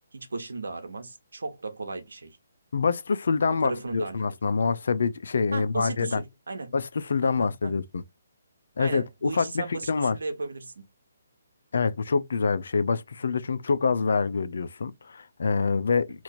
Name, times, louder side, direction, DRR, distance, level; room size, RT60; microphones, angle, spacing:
voice 1, 0.1-2.4 3.6-4.2 5.5-6.7 7.2-7.8 8.8-10.8, right 3 dB, 80° right, 1.0 m, -36 dB
voice 2, 2.7-6.2 6.7-8.0 8.8-10.2 11.7-16.2, left 5 dB, 70° left, 0.5 m, -26 dB
2.9 x 2.6 x 4.0 m
hypercardioid pair, 150°, 0 cm